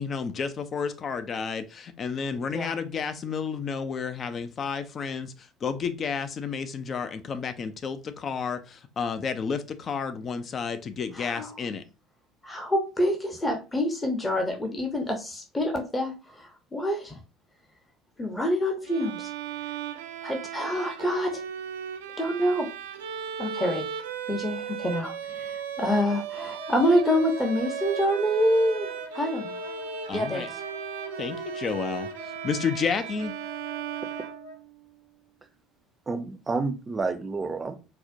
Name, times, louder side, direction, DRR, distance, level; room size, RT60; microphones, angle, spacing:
voice 1, 0.0-11.8 30.1-30.5 31.2-33.3, left 6 dB, 40° left, 0.4 m, -31 dB
voice 2, 11.1-11.5 12.4-17.2 18.2-19.3 20.2-21.4 22.2-22.7 23.4-23.8 24.3-25.4 25.8-28.9 29.1-29.6 30.1-30.5, equal, 20° left, 0.8 m, -26 dB
Bowed string instrument, 18.9-34.8, right 8 dB, 75° right, 0.3 m, -36 dB
Wind instrument woodwind instrument, 26.4-34.6, right 1 dB, 55° left, 1.4 m, -43 dB
voice 3, 36.1-37.7, right 3 dB, 25° right, 0.5 m, -29 dB
4.3 x 2.1 x 2.5 m
hypercardioid pair, 60°, 0 cm